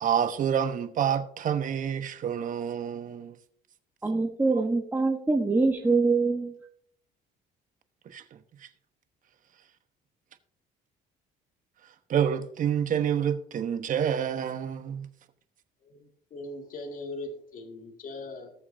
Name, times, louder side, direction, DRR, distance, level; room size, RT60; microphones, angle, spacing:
voice 1, 0.0-3.4 4.6-4.7 8.0-8.7 12.1-15.1, right 8 dB, 50° right, 1.1 m, -28 dB
voice 2, 4.0-6.5, right 3 dB, 10° right, 1.1 m, -24 dB
voice 3, 15.8-18.5, left 2 dB, 55° left, 2.3 m, -40 dB
19.5 x 6.8 x 2.7 m
cardioid pair, 110°, 17 cm